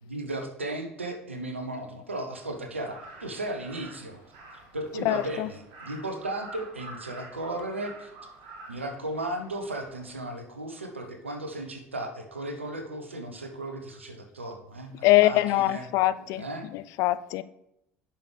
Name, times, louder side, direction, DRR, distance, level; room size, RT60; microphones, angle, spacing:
voice 1, 0.0-4.2 4.7-8.1 8.7-15.8 16.3-16.7, right 1 dB, 85° right, 0.9 m, -35 dB
Crow, 2.8-10.1, right 2 dB, 55° right, 1.6 m, -48 dB
voice 2, 5.0-5.5 15.0-16.4 16.7-17.4, left 16 dB, 55° left, 0.4 m, -23 dB
10.5 x 5.6 x 3.4 m
figure-of-eight pair, 65°, 6 cm